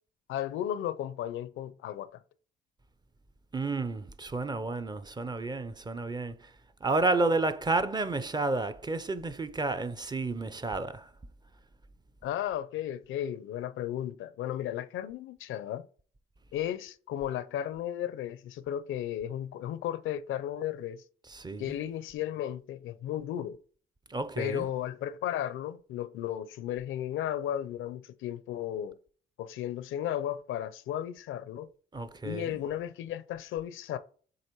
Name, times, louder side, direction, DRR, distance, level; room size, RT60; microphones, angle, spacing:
voice 1, 0.3-2.2 12.2-15.9 16.5-21.0 21.6-23.6 24.4-29.0 29.4-31.7 32.2-34.0, left 11 dB, 80° left, 0.6 m, -34 dB
voice 2, 3.5-6.4 6.8-11.0 21.3-21.7 24.1-24.7 31.9-32.5, right 3 dB, 20° right, 0.6 m, -31 dB
7.8 x 3.0 x 4.5 m
cardioid pair, 90°, 20 cm